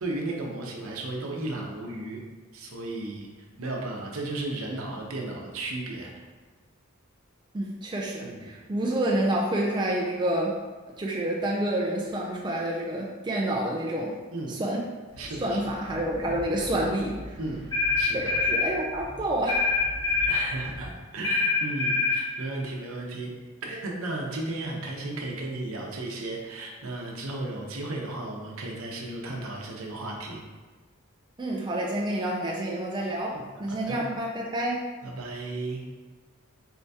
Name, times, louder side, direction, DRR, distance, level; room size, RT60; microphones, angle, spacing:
voice 1, 0.0-2.2 2.5-3.3 3.6-6.1 8.2-8.5 14.3-14.5 15.2-15.6 17.4-17.6 18.0-18.4 20.2-23.3 23.6-30.4 33.3-34.0 35.0-35.8, right 2 dB, 75° right, -1 dB, 0.8 m, -34 dB
voice 2, 7.5-10.6 11.0-14.1 14.5-14.8 15.4-17.4 18.0-19.6 31.4-34.8, right 1 dB, 20° right, -2 dB, 0.4 m, -28 dB
sound 1, 15.1-20.9, left 1 dB, 70° left, 1.4 m, -43 dB
sound 2, 17.7-18.7 19.5-20.5 21.2-22.2, left 4 dB, 15° left, 0.7 m, -24 dB
4.4 x 3.4 x 2.7 m, 1.4 s
head